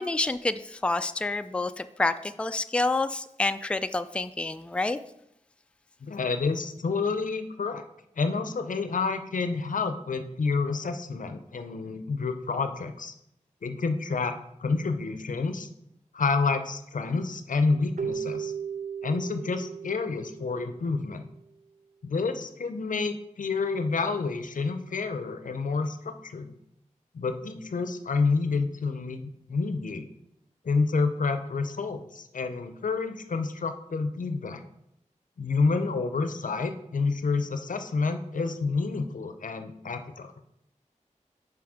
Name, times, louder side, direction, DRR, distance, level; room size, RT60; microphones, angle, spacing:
voice 1, 0.0-5.0, left 2 dB, 10° left, 10 dB, 0.3 m, -28 dB
voice 2, 6.0-7.8 8.2-13.1 13.6-15.7 16.1-18.5 19.0-21.2 22.0-26.5 27.1-30.1 30.6-34.6 35.4-40.3, left 4 dB, 85° left, 9 dB, 0.5 m, -29 dB
Keyboard (musical), 18.0-21.2, right 7 dB, 80° right, 0.6 m, -36 dB
5.9 x 4.7 x 4.9 m, 0.79 s
wide cardioid pair, 55°, 13 cm